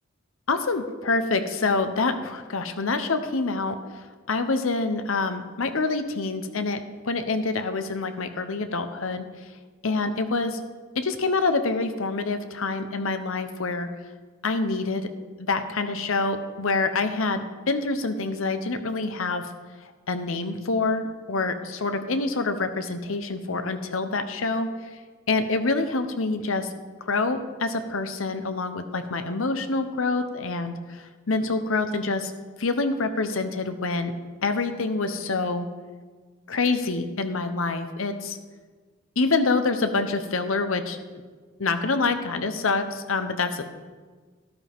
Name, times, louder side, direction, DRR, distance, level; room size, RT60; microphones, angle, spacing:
voice 1, 0.5-3.8 4.3-9.3 9.8-10.6 10.9-13.9 14.4-15.1 15.4-19.4 20.1-25.0 25.3-26.7 27.0-32.3 32.6-34.1 34.4-35.7 36.5-38.4 39.2-41.0 41.6-43.6, left 3 dB, 70° left, 9 dB, 0.9 m, -26 dB
12.5 x 11.0 x 3.6 m, 1.4 s
head